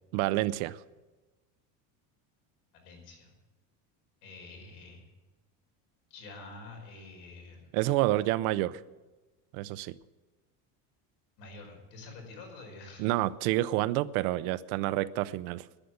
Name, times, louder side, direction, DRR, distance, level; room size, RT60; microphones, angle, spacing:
voice 1, 0.1-0.8 7.7-8.8 9.5-9.9 13.0-15.7, right 16 dB, 65° right, 17 dB, 0.7 m, -28 dB
voice 2, 2.7-3.4 4.2-5.0 6.1-7.7 11.4-13.1, left 3 dB, 70° left, 1 dB, 5.3 m, -48 dB
12.0 x 10.0 x 9.5 m, 1.2 s
cardioid pair, 170°, 47 cm